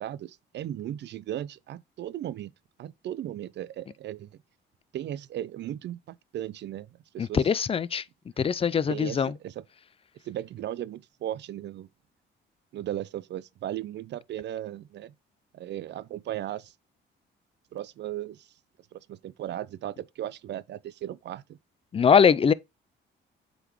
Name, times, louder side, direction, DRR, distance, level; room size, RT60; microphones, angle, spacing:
voice 1, 0.0-2.5 2.8-4.3 4.9-6.9 7.1-7.5 8.9-9.6 10.2-11.9 12.7-15.1 15.5-16.7 17.7-18.5 18.9-21.6, right 12 dB, 60° right, 0.5 m, -36 dB
voice 2, 7.2-8.0 8.4-9.3 21.9-22.5, left 6 dB, 30° left, 0.4 m, -22 dB
8.0 x 3.9 x 3.0 m
cardioid pair, 90°, 20 cm